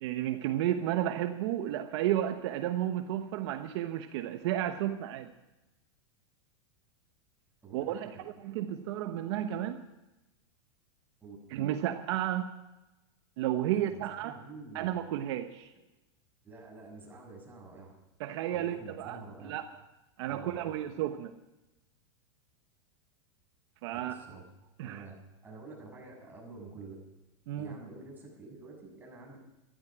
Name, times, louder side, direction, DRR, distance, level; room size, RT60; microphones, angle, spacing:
voice 1, 0.0-5.3 7.7-8.1 8.4-9.8 11.5-12.5 13.4-14.4 14.7-15.7 18.2-19.6 20.2-21.3 23.8-24.1 24.8-25.0 27.5-27.7, right 12 dB, 65° right, 7 dB, 1.1 m, -32 dB
voice 2, 7.6-8.2 11.2-11.4 13.7-14.9 16.4-17.9 18.5-19.5 20.3-20.8 23.9-24.4 24.8-25.1 25.4-26.9 27.6-29.4, right 3 dB, 15° right, -2 dB, 7.2 m, -48 dB
13.5 x 13.0 x 6.2 m, 0.98 s
supercardioid pair, 125°, 15 cm